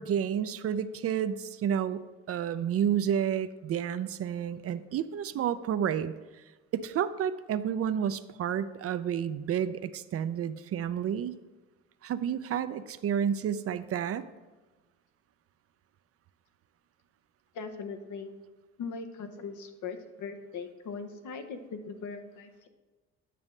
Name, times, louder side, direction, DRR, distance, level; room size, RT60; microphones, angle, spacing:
voice 1, 0.0-6.1 6.7-11.3 12.0-14.3, right 9 dB, 50° right, 13 dB, 0.4 m, -30 dB
voice 2, 17.5-18.3 18.8-22.7, left 5 dB, 80° left, 7 dB, 0.9 m, -40 dB
9.1 x 6.1 x 3.2 m, 1.2 s
cardioid pair, 90°, 30 cm